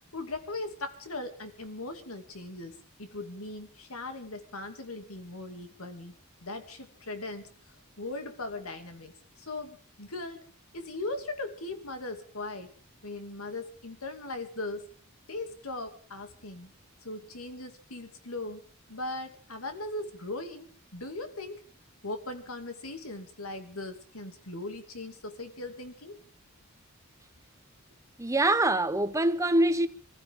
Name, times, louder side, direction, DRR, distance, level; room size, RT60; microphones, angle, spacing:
voice 1, 0.1-6.1 6.4-9.1 9.4-10.4 10.7-12.7 13.0-14.9 15.3-16.7 17.0-18.6 18.9-21.6 22.0-26.2, left 2 dB, 80° left, 2.6 m, -39 dB
voice 2, 28.2-29.9, right 1 dB, 15° right, 0.9 m, -24 dB
24.5 x 15.0 x 3.7 m
head